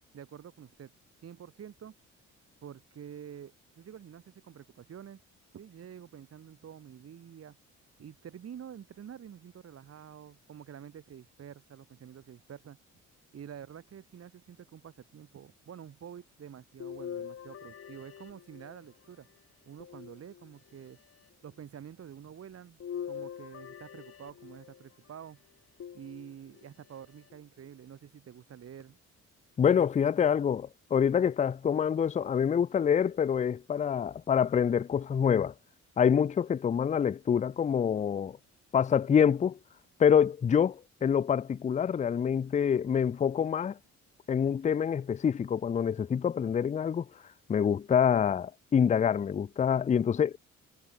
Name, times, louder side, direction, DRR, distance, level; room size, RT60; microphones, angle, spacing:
voice 1, 0.1-0.9 1.2-1.9 2.6-5.2 5.5-7.6 8.0-12.8 13.3-19.3 19.7-21.0 21.4-22.8 23.0-25.4 25.9-29.0, right 9 dB, 50° right, 2.3 m, -48 dB
sound 1, 16.8-19.1 19.8-20.8 22.8-24.9 25.8-26.7 27.3-27.4 28.8-28.9, left 8 dB, 50° left, 1.6 m, -43 dB
voice 2, 29.6-35.5 36.0-38.4 38.7-39.6 40.0-43.8 44.3-47.1 47.5-50.3, left 8 dB, 25° left, 0.4 m, -26 dB
cardioid pair, 90°, 30 cm